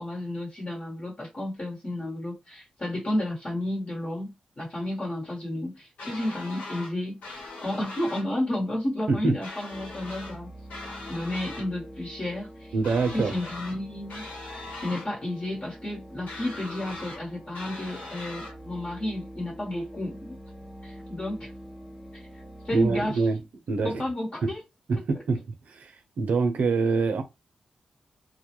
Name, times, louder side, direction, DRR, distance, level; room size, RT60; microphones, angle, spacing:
voice 1, 0.0-7.2 7.6-10.5 11.1-12.7 13.1-14.2 14.5-20.4 20.8-21.5 22.1-22.3 22.6-23.2 23.8-24.6, left 1 dB, 45° left, 1.2 m, -32 dB
sound 1, 6.0-6.9 7.2-8.3 9.4-10.4 10.7-11.7 12.8-13.8 14.1-15.1 16.3-17.2 17.5-18.5, left 2 dB, 90° left, 1.0 m, -40 dB
sound 2, 9.7-23.1, equal, ahead, 1.3 m, -45 dB
voice 2, 12.7-13.3 22.7-23.4 23.7-24.0 24.9-27.2, right 4 dB, 75° right, 0.5 m, -25 dB
2.3 x 2.1 x 2.9 m
cardioid pair, 50°, 3 cm